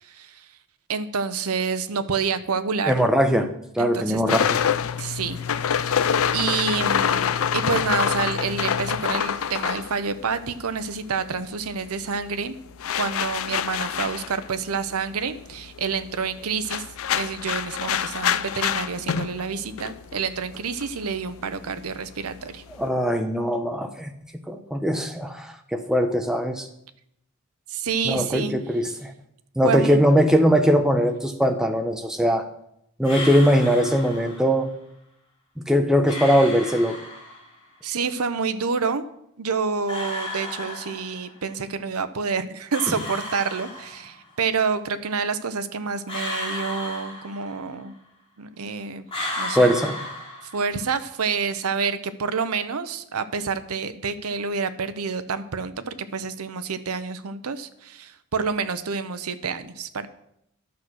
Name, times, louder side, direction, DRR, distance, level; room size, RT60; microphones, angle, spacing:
voice 1, 0.0-0.4 0.9-3.0 3.8-4.4 5.0-5.4 5.8-12.6 13.0-16.8 17.1-22.6 27.7-28.6 29.6-30.0 37.8-39.0 39.4-47.9 48.4-49.1 49.4-49.7 50.5-60.1, right 5 dB, 85° right, 11 dB, 0.8 m, -28 dB
voice 2, 2.9-3.5 3.7-4.6 22.8-24.1 24.5-26.7 28.0-29.1 29.6-32.5 33.0-34.7 35.7-37.0 42.9-43.0 49.5-50.0, equal, 5° right, 5 dB, 0.8 m, -21 dB
sound 1, 4.3-11.0 11.3-22.9, left 8 dB, 65° left, 0.4 m, -27 dB
sound 2, 33.0-34.5 36.0-37.5 39.9-41.4 42.7-44.3 46.1-47.8 49.1-50.9, left 1 dB, 25° left, 2.9 m, -34 dB
11.5 x 6.5 x 6.2 m, 0.77 s
head